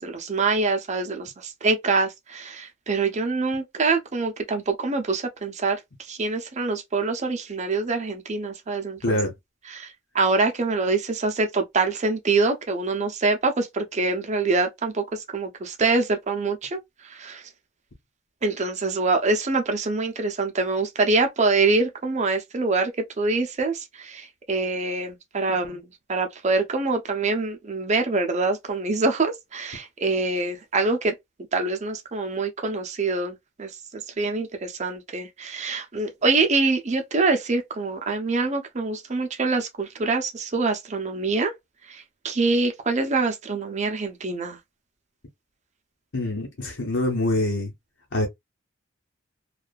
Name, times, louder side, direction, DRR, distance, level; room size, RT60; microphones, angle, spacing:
voice 1, 0.0-5.8 6.1-9.2 9.7-9.9 10.1-16.8 17.1-17.4 18.4-22.9 23.2-25.8 26.1-31.1 31.5-41.5 41.9-44.6, right 3 dB, 35° right, 0.6 m, -25 dB
voice 2, 9.0-9.3 46.1-47.7 48.1-48.3, left 1 dB, 65° left, 1.0 m, -25 dB
2.6 x 2.4 x 2.3 m
head